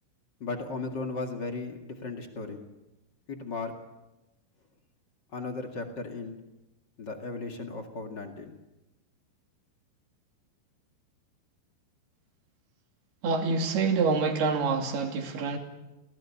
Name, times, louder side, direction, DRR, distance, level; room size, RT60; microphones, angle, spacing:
voice 1, 0.4-2.6 3.3-3.7 5.3-6.4 7.0-8.5, left 3 dB, 55° left, 1.2 m, -36 dB
voice 2, 13.2-15.6, right 4 dB, 55° right, 4.4 m, -26 dB
30.0 x 18.5 x 8.8 m
omnidirectional pair, 5.7 m